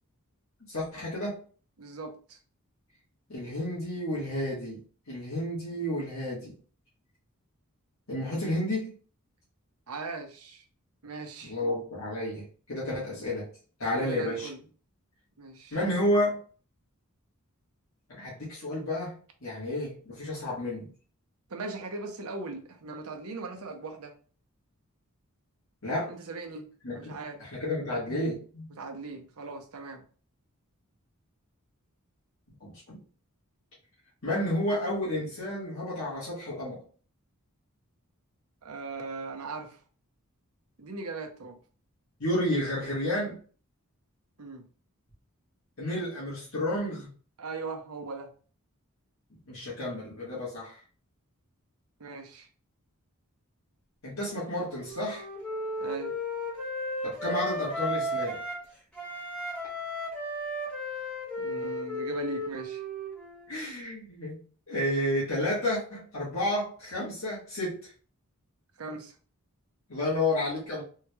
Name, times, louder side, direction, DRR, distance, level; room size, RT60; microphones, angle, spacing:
voice 1, 0.7-1.4 3.3-4.8 5.1-6.5 8.1-8.9 11.4-13.5 13.8-14.5 15.7-16.4 18.1-19.1 19.4-20.9 25.8-26.1 26.8-28.7 32.6-33.0 34.2-36.8 42.2-43.4 45.8-47.1 49.5-50.8 54.0-55.2 57.0-58.4 63.5-64.4 64.7-67.9 69.9-70.8, left 1 dB, 65° left, -8 dB, 1.5 m, -31 dB
voice 2, 1.8-2.4 9.9-10.6 11.0-11.5 13.1-13.3 13.9-14.6 15.4-15.8 21.5-24.1 26.1-27.4 28.8-30.0 38.6-39.8 40.8-41.6 44.4-44.7 47.4-48.3 52.0-52.5 55.8-56.2 61.4-62.8 68.8-69.2, right 3 dB, 75° right, 4 dB, 0.8 m, -39 dB
Wind instrument woodwind instrument, 54.2-58.6 58.9-63.5, equal, 5° left, 1.1 m, -34 dB
3.6 x 3.1 x 2.3 m, 0.41 s
head